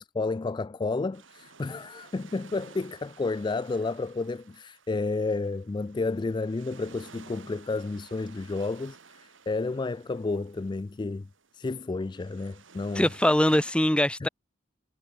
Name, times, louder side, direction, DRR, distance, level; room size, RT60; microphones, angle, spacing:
voice 1, 0.0-11.3 11.5-13.1 14.2-14.3, left 3 dB, 25° left, 0.3 m, -31 dB
sound 1, 1.1-13.7, right 5 dB, 70° right, 3.0 m, -54 dB
voice 2, 12.9-14.3, left 1 dB, 5° left, 0.7 m, -22 dB
head